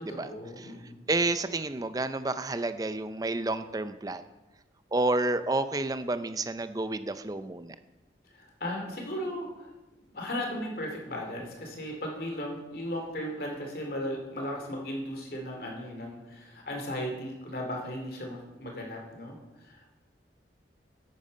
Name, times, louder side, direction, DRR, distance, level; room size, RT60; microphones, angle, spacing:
voice 1, 0.1-1.0 8.3-9.7 10.1-19.9, equal, 55° left, 1 dB, 2.5 m, -36 dB
voice 2, 1.1-4.2 4.9-7.8, right 2 dB, 20° right, 12 dB, 0.5 m, -30 dB
9.6 x 8.9 x 5.1 m, 1.1 s
head